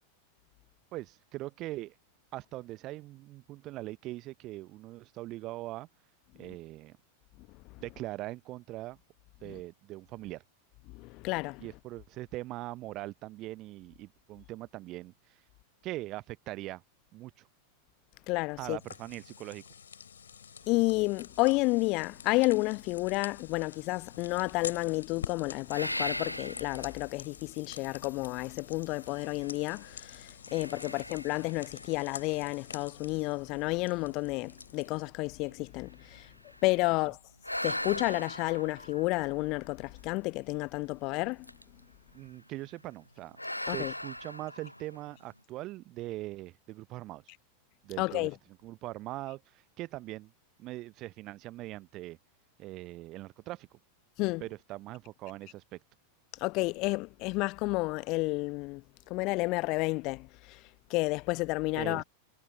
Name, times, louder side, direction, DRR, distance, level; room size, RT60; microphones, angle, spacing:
voice 1, 0.9-1.9 2.3-5.9 6.4-7.0 7.8-9.0 9.4-10.4 11.6-15.4 15.8-16.8 17.1-17.5 18.6-19.6 30.9-31.0 42.1-47.2 47.8-48.3 48.6-50.3 50.6-52.2 52.6-53.7 54.4-55.8 61.7-62.0, right 17 dB, 35° right, 0.8 m, -41 dB
voice 2, 10.9-11.7 18.3-18.8 20.7-36.3 36.6-37.2 37.6-41.5 43.7-43.9 48.0-48.3 54.2-54.4 56.4-60.6 60.9-62.0, left 24 dB, 40° left, 0.9 m, -31 dB
sound 1, 18.8-35.1, left 7 dB, 70° left, 6.2 m, -47 dB
sound 2, 25.7-27.0 27.6-27.7 29.1-29.9 30.5-32.8 33.5-33.6 34.1-34.2 34.5-36.8 37.4-40.1 41.3-41.8 42.2-42.5 43.4-45.2, left 1 dB, 85° left, 0.6 m, -40 dB
figure-of-eight pair, 90°, 0 cm